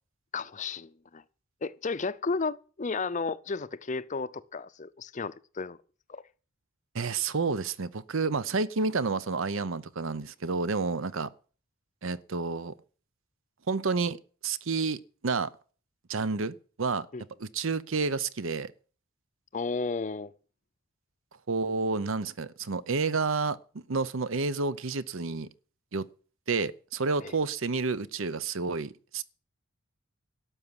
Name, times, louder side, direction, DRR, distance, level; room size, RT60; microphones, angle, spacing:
voice 1, 0.3-1.2 1.6-5.8 6.1-6.2 17.1-17.2 19.5-20.3 27.2-27.3, left 4 dB, 35° left, 0.6 m, -33 dB
voice 2, 6.9-11.3 12.0-12.7 13.7-15.5 16.1-17.1 17.4-18.7 21.5-23.6 23.9-25.5 25.9-26.1 26.5-29.2, right 4 dB, 65° right, 0.7 m, -30 dB
12.5 x 7.1 x 9.7 m
head